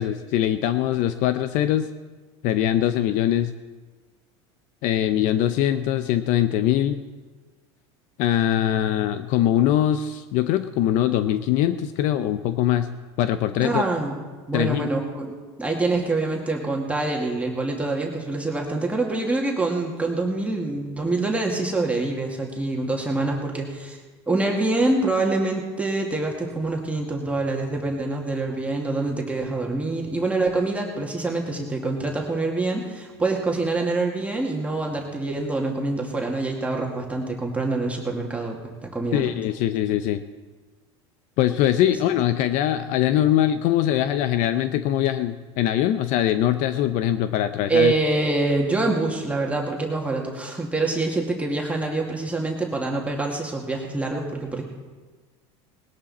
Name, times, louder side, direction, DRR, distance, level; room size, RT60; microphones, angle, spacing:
voice 1, 0.0-1.9 2.4-3.5 4.8-7.0 8.2-12.9 13.2-13.8 14.5-14.9 39.1-40.2 41.4-47.9, left 11 dB, 60° left, 11 dB, 0.7 m, -22 dB
voice 2, 13.6-14.1 14.5-15.3 15.6-24.0 24.3-39.3 47.7-54.6, right 2 dB, 10° right, -1 dB, 2.3 m, -25 dB
19.5 x 11.5 x 4.3 m, 1.3 s
supercardioid pair, 95°, 15 cm